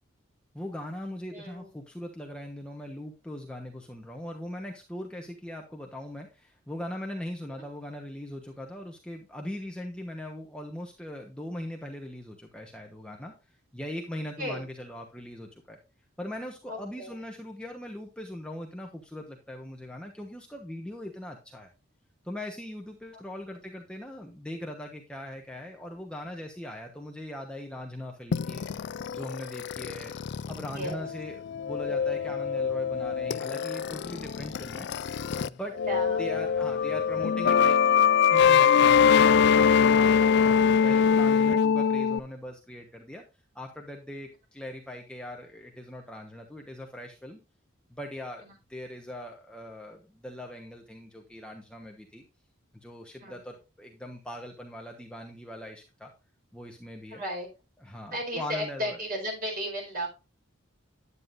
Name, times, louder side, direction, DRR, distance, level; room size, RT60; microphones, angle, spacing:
voice 1, 0.5-13.3 13.7-15.8 16.2-21.7 22.2-28.6 29.1-30.2 30.5-34.9 35.4-35.9 36.2-37.8 38.3-43.2 43.5-47.4 47.9-48.4 48.7-52.2 52.7-56.1 56.5-57.2 57.8-59.0, left 1 dB, 5° left, 1 dB, 1.1 m, -40 dB
voice 2, 1.3-1.7 7.5-7.6 14.4-14.6 16.7-17.1 23.1-23.2 30.7-31.0 35.9-36.2 48.4-48.5 53.2-53.3 57.1-57.5 58.1-60.1, equal, 45° right, 1 dB, 4.5 m, -34 dB
sound 1, 28.3-35.5 35.8-42.2, left 7 dB, 55° left, 0.3 m, -23 dB
9.7 x 9.3 x 2.6 m, 0.28 s
head